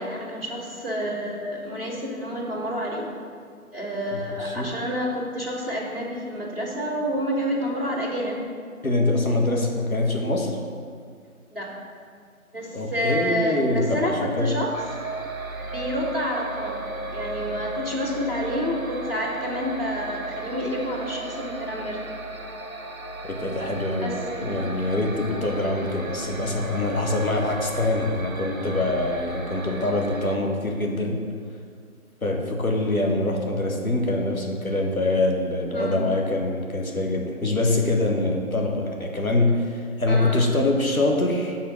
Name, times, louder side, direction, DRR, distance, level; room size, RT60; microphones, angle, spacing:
voice 1, 0.0-3.1 3.7-8.4 11.5-11.7 12.5-14.7 15.6-22.1 24.0-24.7 35.7-36.0 40.1-40.5, equal, 40° right, -4 dB, 1.5 m, -29 dB
voice 2, 4.1-4.7 8.8-10.6 12.7-14.5 23.2-31.2 32.2-41.6, left 2 dB, 70° left, 1 dB, 1.2 m, -24 dB
sound 1, 14.7-30.4, right 2 dB, 65° right, 0.7 m, -35 dB
6.9 x 3.7 x 6.3 m, 2.1 s
figure-of-eight pair, 180°, 43 cm